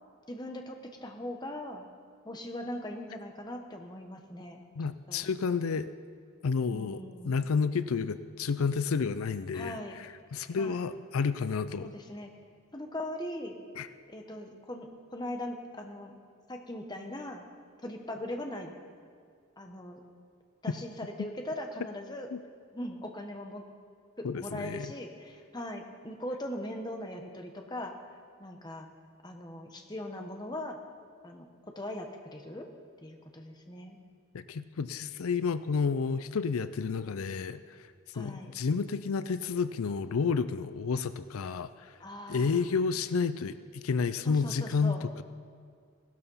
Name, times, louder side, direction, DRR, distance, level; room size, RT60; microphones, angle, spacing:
voice 1, 0.3-1.9 2.2-4.6 5.1-5.3 6.7-7.5 9.5-10.0 10.6-10.9 11.8-12.3 12.7-13.6 14.1-16.2 16.5-17.4 17.8-18.8 19.6-20.0 20.6-22.3 22.7-23.6 24.2-27.9 28.4-28.9 29.2-30.8 31.2-31.5 31.7-32.7 33.0-34.0 38.1-38.5 42.0-42.7 44.2-45.0, left 1 dB, 20° left, 3 dB, 1.2 m, -40 dB
voice 2, 4.8-5.9 6.4-11.9 13.8-13.9 22.3-22.4 24.2-24.9 34.3-37.8 38.2-41.9 42.3-45.2, left 5 dB, 85° left, 13 dB, 0.5 m, -30 dB
16.5 x 12.5 x 5.6 m, 2.1 s
head